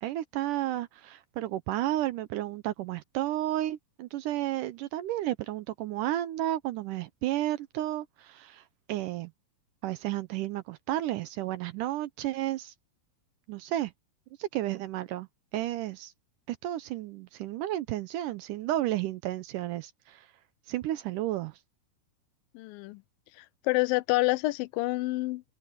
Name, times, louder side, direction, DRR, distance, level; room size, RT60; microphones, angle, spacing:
voice 1, 0.0-8.6 8.9-9.3 9.8-12.7 13.5-13.9 14.4-15.3 15.5-16.1 16.5-20.3 20.7-21.5, right 14 dB, 80° right, 2.0 m, -32 dB
voice 2, 22.5-23.0 23.4-25.4, left 21 dB, 85° left, 2.3 m, -28 dB
open air
omnidirectional pair, 4.2 m